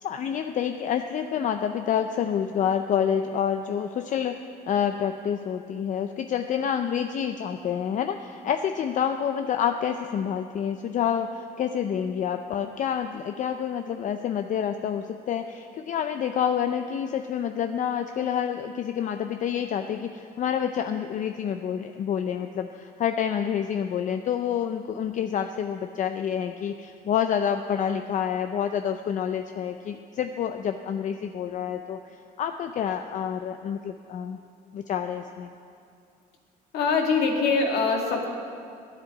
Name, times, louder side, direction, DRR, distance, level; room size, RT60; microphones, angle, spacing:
voice 1, 0.0-4.4 4.7-32.0 32.4-34.4 34.7-35.5, left 8 dB, 50° left, 7 dB, 0.5 m, -28 dB
voice 2, 36.7-38.3, left 4 dB, 75° left, 1 dB, 2.0 m, -23 dB
10.5 x 7.5 x 9.6 m, 2.4 s
cardioid pair, 110°, 17 cm